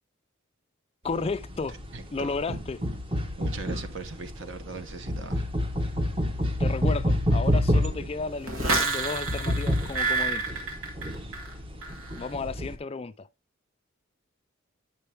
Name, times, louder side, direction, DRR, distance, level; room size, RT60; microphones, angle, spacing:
voice 1, 1.0-1.8 2.1-2.8 6.6-10.5 12.2-13.3, left 4 dB, 30° left, 0.3 m, -33 dB
sound 1, 1.1-12.7, equal, 25° right, 0.8 m, -29 dB
voice 2, 1.9-2.3 3.4-5.4, right 4 dB, 60° right, 0.9 m, -39 dB
sound 2, 8.4-11.5 11.8-12.2, right 3 dB, 90° right, 2.0 m, -29 dB
8.5 x 5.5 x 3.3 m
head